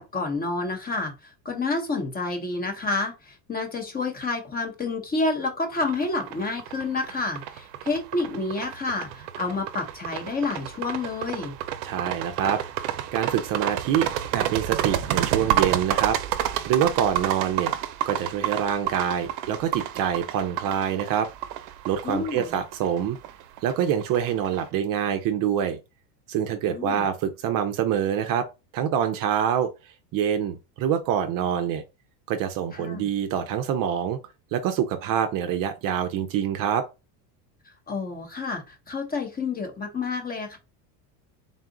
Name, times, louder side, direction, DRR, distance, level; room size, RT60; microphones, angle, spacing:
voice 1, 0.0-11.5 22.0-22.6 26.7-27.0 32.7-33.1 37.9-40.6, left 3 dB, 20° left, 0.8 m, -29 dB
sound 1, 5.8-24.6, right 12 dB, 90° right, 0.7 m, -30 dB
voice 2, 11.8-16.2 16.6-17.7 18.1-21.3 21.9-23.2 23.6-25.8 26.3-28.5 28.7-29.7 30.1-31.8 32.3-34.2 34.5-36.8, right 9 dB, 45° right, 0.6 m, -26 dB
3.9 x 2.4 x 3.7 m
supercardioid pair, 135°, 48 cm